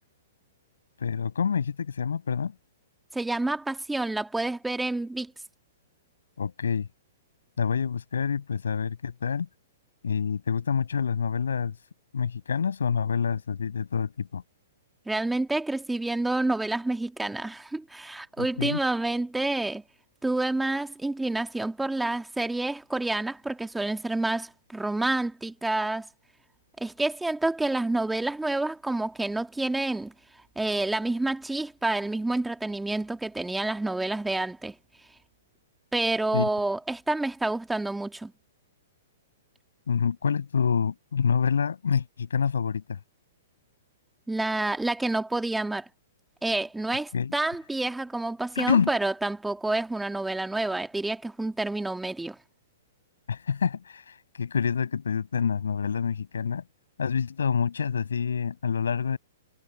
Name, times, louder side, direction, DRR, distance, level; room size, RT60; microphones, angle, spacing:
voice 1, 1.0-2.5 6.4-6.9 7.6-9.5 10.0-11.7 12.1-14.4 18.4-18.8 36.3-36.5 39.9-43.0 47.1-47.3 48.6-48.9 53.3-56.6 57.0-59.2, left 6 dB, 80° left, 7.5 m, -27 dB
voice 2, 3.1-5.3 15.1-19.8 20.2-26.1 26.8-30.1 30.6-34.7 35.9-38.3 44.3-45.9 46.4-52.4, right 2 dB, 5° right, 2.1 m, -28 dB
hypercardioid pair, 120°, 0 cm